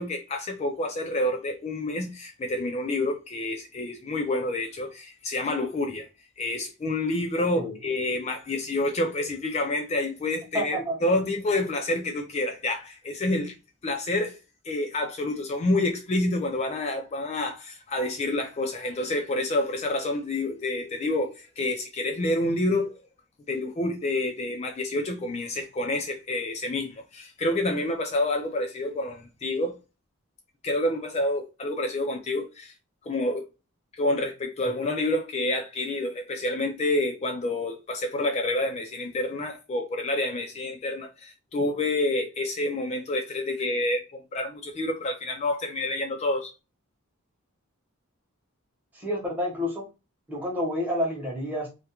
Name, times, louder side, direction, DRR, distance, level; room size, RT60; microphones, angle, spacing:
voice 1, 0.0-6.1 6.4-13.5 13.8-14.4 14.6-23.0 23.5-29.8 30.6-32.7 33.0-33.4 34.0-46.5, left 2 dB, 30° left, 0.3 m, -28 dB
voice 2, 10.5-11.0 48.9-49.9 50.3-51.7, equal, 10° right, 0.8 m, -29 dB
2.3 x 2.1 x 2.8 m
head